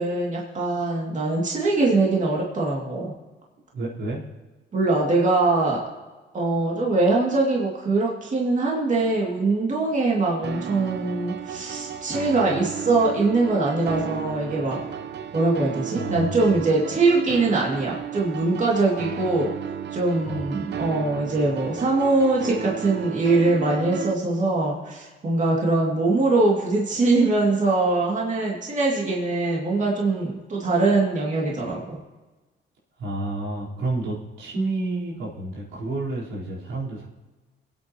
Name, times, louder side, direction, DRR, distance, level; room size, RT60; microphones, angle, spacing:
voice 1, 0.0-3.1 4.7-5.8 6.3-14.8 15.3-19.5 19.9-32.0, right 3 dB, 40° right, -3 dB, 2.6 m, -22 dB
voice 2, 3.7-4.2 15.9-16.5 20.3-20.5 33.0-37.1, right 2 dB, 85° right, -7 dB, 4.3 m, -30 dB
sound 1, 10.4-24.1, right 9 dB, 60° right, 0.7 m, -33 dB
22.5 x 8.6 x 3.1 m, 1.2 s
cardioid pair, 90°, 20 cm